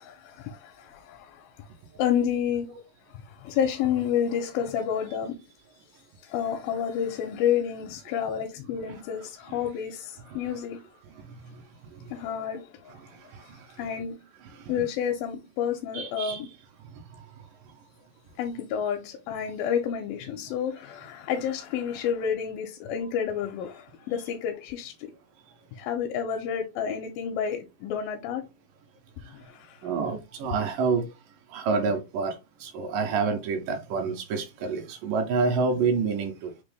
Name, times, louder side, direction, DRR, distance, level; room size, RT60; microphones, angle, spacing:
voice 1, 0.0-1.7 2.0-2.7 3.1-5.4 6.2-10.8 12.1-13.0 13.8-14.2 14.7-16.5 18.4-25.1 25.7-28.5 29.3-29.8, left 8 dB, 90° left, 2.4 m, -30 dB
voice 2, 12.9-13.9 14.5-14.7 15.9-16.4 17.1-17.2 29.8-31.1 31.5-36.5, right 4 dB, 75° right, 2.3 m, -28 dB
6.0 x 2.3 x 3.2 m
omnidirectional pair, 4.1 m